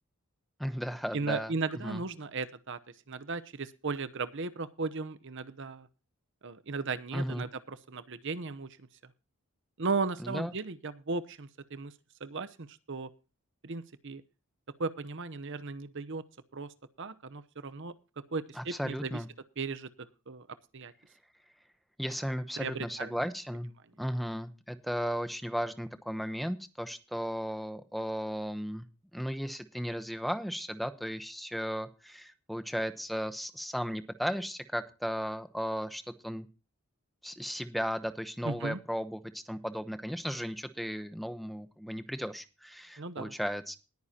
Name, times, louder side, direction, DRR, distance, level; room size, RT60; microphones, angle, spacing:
voice 1, 0.6-1.5 1.8-2.0 7.1-7.4 10.2-10.5 18.5-19.3 22.0-23.7 24.0-28.9 29.1-36.5 37.2-43.8, equal, ahead, 10 dB, 0.9 m, -35 dB
voice 2, 1.1-2.8 3.1-5.9 6.4-8.8 9.8-11.9 12.2-13.1 13.6-14.2 14.8-16.2 16.5-16.7 17.0-17.9 18.3-19.2 19.6-19.9 20.3-20.5 20.7-20.9 22.6-23.2 38.4-38.8 43.0-43.3, right 4 dB, 55° right, 13 dB, 0.9 m, -36 dB
20.0 x 9.6 x 2.9 m, 0.31 s
head